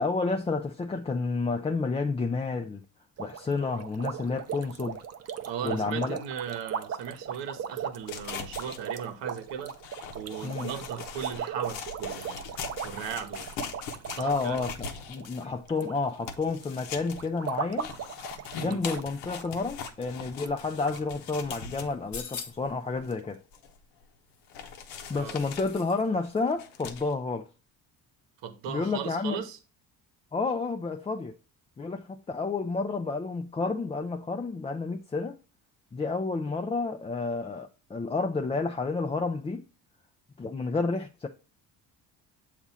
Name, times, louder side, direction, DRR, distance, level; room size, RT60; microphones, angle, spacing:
voice 1, 0.0-2.8 3.2-5.0 5.6-6.2 10.4-10.7 14.2-17.9 18.6-23.4 25.1-27.5 28.7-29.4 30.3-31.4 31.8-35.4 35.9-39.6 40.4-41.3, left 3 dB, 15° left, 0.4 m, -30 dB
sound 1, 3.2-15.9 16.2-16.6 17.1-19.1 19.3-19.5 19.8-19.9 20.5-20.6 20.8-21.0, right 8 dB, 35° right, 0.6 m, -37 dB
voice 2, 5.5-9.7 10.1-12.4 12.8-13.5 14.1-14.7 18.6-18.8 25.1-25.4 28.4-29.6, right 8 dB, 75° right, 1.0 m, -37 dB
sound 2, 8.0-22.2 22.6-22.7 23.0-24.0 24.5-27.1, left 6 dB, 90° left, 0.8 m, -41 dB
sound 3, 21.9-22.8 24.3-26.0 26.3-26.4, left 6 dB, 40° left, 0.8 m, -43 dB
7.0 x 2.5 x 5.5 m
supercardioid pair, 75°, 44 cm